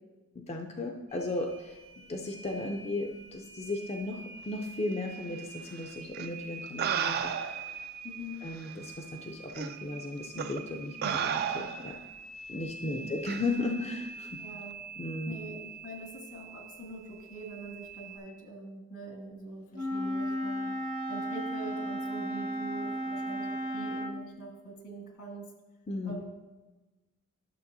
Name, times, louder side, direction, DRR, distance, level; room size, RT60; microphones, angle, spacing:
voice 1, 0.3-1.8 2.1-7.3 8.4-12.0 12.5-14.4 15.0-15.4 25.9-26.2, left 2 dB, 30° left, 2 dB, 0.4 m, -35 dB
sound 1, 1.1-18.2, right 5 dB, 70° right, 1.8 m, -46 dB
sound 2, 6.1-6.3 6.8-7.7 8.6-8.7 9.5-9.7 10.4-10.6 11.0-12.0 13.3-13.5, right 7 dB, 45° right, 0.3 m, -32 dB
voice 2, 8.0-8.4 12.8-13.3 14.4-14.8 15.3-25.5 26.0-26.2, right 1 dB, 85° left, -2 dB, 2.2 m, -44 dB
Wind instrument woodwind instrument, 19.7-24.2, equal, 65° left, 0.8 m, -34 dB
11.5 x 6.7 x 2.6 m, 1.2 s
head